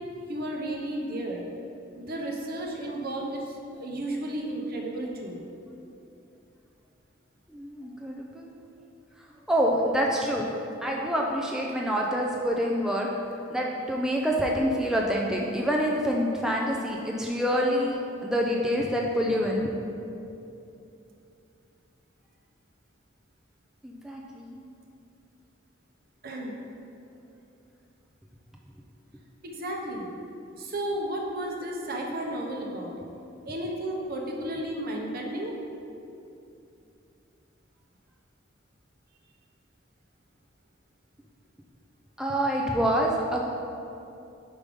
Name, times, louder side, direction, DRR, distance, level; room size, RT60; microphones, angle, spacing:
voice 1, 0.3-1.4 2.0-5.4 26.2-26.5 29.4-30.1 30.6-32.9 33.5-35.5, right 1 dB, 50° right, 0 dB, 0.9 m, -33 dB
voice 2, 7.5-8.5 9.5-10.5 10.8-13.1 13.5-19.7 23.8-24.6 42.2-43.4, equal, 5° right, -2 dB, 0.4 m, -26 dB
5.3 x 4.9 x 5.1 m, 2.7 s
head